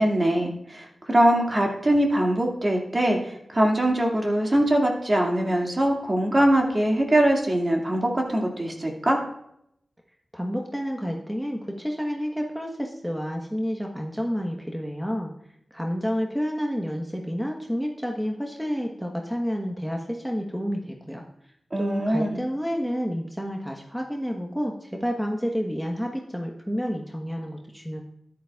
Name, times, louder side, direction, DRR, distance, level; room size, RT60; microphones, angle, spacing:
voice 1, 0.0-9.2 21.7-22.4, right 1 dB, 35° right, 0 dB, 2.1 m, -22 dB
voice 2, 10.3-15.3 15.7-21.2 21.8-28.0, equal, ahead, 1 dB, 1.1 m, -29 dB
13.0 x 10.5 x 2.4 m, 0.75 s
cardioid pair, 55°, 0 cm